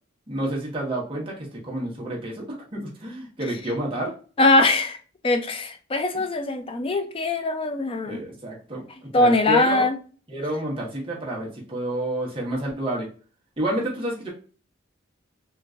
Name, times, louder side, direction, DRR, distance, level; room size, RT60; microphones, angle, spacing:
voice 1, 0.3-2.5 2.7-4.1 8.1-8.8 9.1-9.9 10.3-13.1 13.6-14.3, right 1 dB, 25° right, -3 dB, 1.1 m, -29 dB
voice 2, 4.4-5.0 5.2-8.2 9.1-9.9, left 2 dB, 25° left, 7 dB, 0.4 m, -21 dB
3.7 x 2.6 x 2.4 m, 0.38 s
head